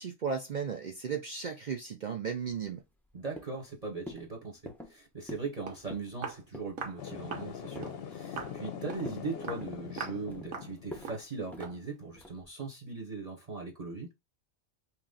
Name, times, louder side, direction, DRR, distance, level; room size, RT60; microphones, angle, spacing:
voice 1, 0.0-2.8, right 6 dB, 60° right, 0.4 m, -35 dB
sound 1, 2.4-3.1 3.4-3.7 4.1-4.3 4.7-5.0 5.3-5.5 5.8-6.1 6.5-6.8 7.1-8.0 8.4-8.7 9.0-9.3 9.6-10.5 10.9-11.1 11.5-11.7 12.2-12.5, equal, ahead, 0.5 m, -45 dB
voice 2, 3.1-14.1, right 4 dB, 35° right, 0.9 m, -40 dB
Walk footsteps, 5.7-5.8 6.2-6.4 6.8-7.0 7.3-7.5 7.8-8.0 8.4-8.6 8.9-9.1 9.4-9.7 10.0-10.2 10.5-10.7 11.0-11.3 11.6-11.8, right 6 dB, 90° right, 1.3 m, -40 dB
sound 2, 7.0-11.2, left 7 dB, 55° left, 0.8 m, -42 dB
3.0 x 3.0 x 3.7 m
omnidirectional pair, 1.4 m